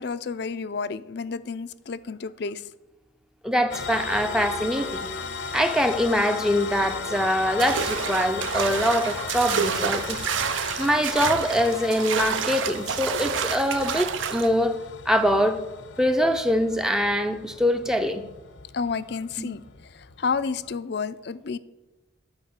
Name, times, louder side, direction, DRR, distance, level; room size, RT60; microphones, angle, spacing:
voice 1, 0.0-2.7 18.7-21.6, left 5 dB, 55° left, 0.4 m, -31 dB
voice 2, 3.4-5.1 5.5-10.2 10.8-14.8 15.1-15.6 16.0-18.2 19.4-19.5, equal, 5° right, 0.5 m, -23 dB
sound 1, 3.7-20.8, left 5 dB, 70° left, 0.8 m, -36 dB
sound 2, 7.6-14.5, right 7 dB, 70° right, 0.6 m, -29 dB
11.5 x 5.2 x 8.1 m
head